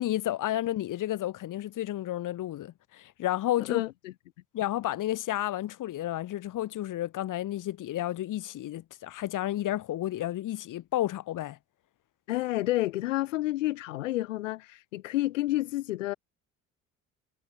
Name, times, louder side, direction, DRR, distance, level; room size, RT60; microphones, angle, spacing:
voice 1, 0.0-3.8 4.5-11.6, left 14 dB, 55° left, 3.3 m, -31 dB
voice 2, 3.6-4.1 12.3-16.1, left 17 dB, 75° left, 2.0 m, -30 dB
figure-of-eight pair, 55°, 38 cm